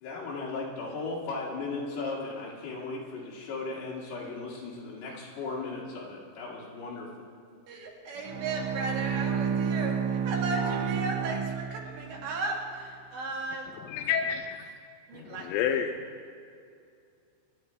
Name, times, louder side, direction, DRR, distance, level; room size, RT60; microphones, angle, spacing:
voice 1, 0.0-7.1, left 3 dB, 65° left, -3 dB, 3.7 m, -36 dB
voice 2, 7.7-13.8 15.1-15.5, right 3 dB, 70° right, -1 dB, 3.9 m, -35 dB
Bowed string instrument, 8.2-12.3, right 7 dB, 85° right, 3.1 m, -30 dB
voice 3, 13.9-14.7 15.1-16.0, left 8 dB, 85° left, 4 dB, 2.7 m, -30 dB
25.5 x 9.9 x 3.4 m, 2.4 s
omnidirectional pair, 5.6 m